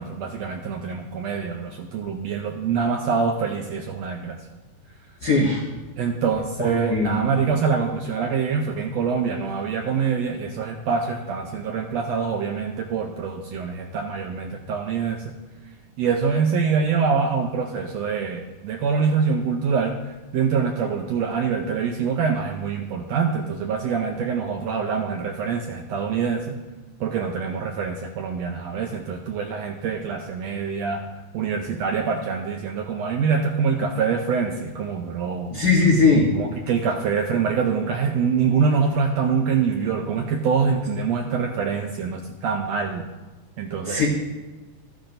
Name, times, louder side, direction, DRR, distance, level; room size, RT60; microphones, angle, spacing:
voice 1, 0.0-4.4 6.0-15.2 16.0-26.5 27.0-31.0 31.3-35.5 36.3-43.0 43.6-44.1, right 6 dB, 80° right, 3 dB, 1.5 m, -25 dB
voice 2, 5.2-5.6 6.6-7.1 35.5-36.3 43.9-44.1, left 3 dB, 85° left, -2 dB, 0.8 m, -19 dB
13.5 x 10.5 x 2.6 m, 1.2 s
omnidirectional pair, 3.7 m